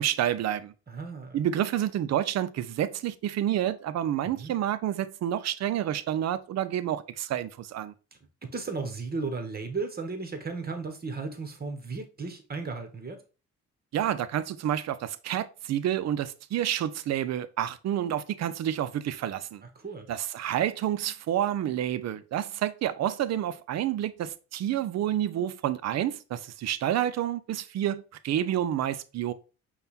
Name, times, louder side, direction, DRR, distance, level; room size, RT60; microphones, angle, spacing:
voice 1, 0.0-0.7 1.3-7.9 13.9-19.6 20.1-29.3, right 11 dB, 60° right, 0.5 m, -29 dB
voice 2, 0.9-1.4 4.2-4.5 8.4-13.2 19.6-20.1, right 4 dB, 30° right, 1.1 m, -35 dB
5.4 x 2.4 x 4.1 m
cardioid pair, 90°, 30 cm